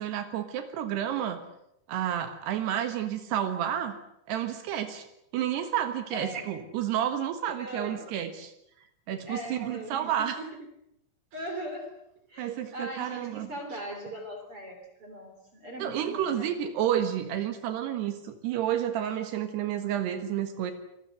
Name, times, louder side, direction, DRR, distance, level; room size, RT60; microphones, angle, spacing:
voice 1, 0.0-1.4 1.9-4.0 4.3-5.1 5.3-8.5 9.1-10.4 12.4-13.5 15.8-20.7, right 10 dB, 75° right, 8 dB, 3.5 m, -30 dB
voice 2, 6.1-6.5 7.6-8.1 9.3-10.5 11.3-11.9 12.3-16.6, equal, 35° right, 4 dB, 3.6 m, -40 dB
26.0 x 19.5 x 7.8 m, 0.79 s
omnidirectional pair, 4.9 m